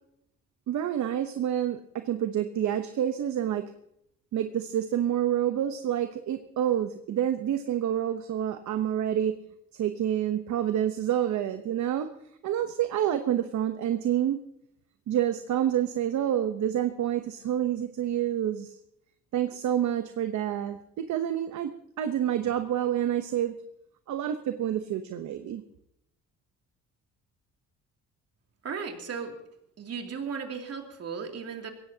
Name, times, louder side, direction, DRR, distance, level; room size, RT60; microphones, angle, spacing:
voice 1, 0.7-3.7 4.3-9.4 9.7-12.1 12.4-14.4 15.1-18.7 19.3-20.8 21.1-21.7 22.0-23.5 24.1-25.6, right 10 dB, 70° right, 8 dB, 0.9 m, -28 dB
voice 2, 28.6-29.3 29.8-31.7, right 6 dB, 55° right, 3 dB, 2.7 m, -36 dB
21.5 x 17.0 x 2.8 m, 0.76 s
cardioid pair, 90°, 30 cm